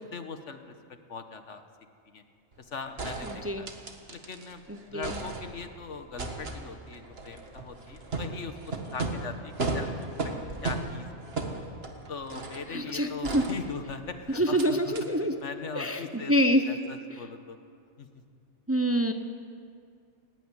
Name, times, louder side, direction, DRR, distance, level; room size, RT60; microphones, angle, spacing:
voice 1, 0.1-1.6 2.1-2.2 2.6-3.7 4.1-4.6 4.9-8.6 8.9-9.9 10.2-10.3 10.6-11.1 11.4-11.5 12.1-16.3 16.7-17.6 18.0-18.2, left 5 dB, 75° left, 8 dB, 1.6 m, -40 dB
sound 1, 2.5-2.6 3.0-4.5 4.8-5.8 6.2-12.7 13.2-14.1 14.6-14.7 14.9-15.0, right 3 dB, 55° right, 1.9 m, -35 dB
voice 2, 3.2-3.7 4.7-5.2 12.7-13.4 14.3-15.4 15.8-16.8 17.1-17.2 18.7-19.1, equal, 15° right, 7 dB, 0.8 m, -26 dB
18.5 x 16.0 x 9.7 m, 2.3 s
omnidirectional pair, 1.2 m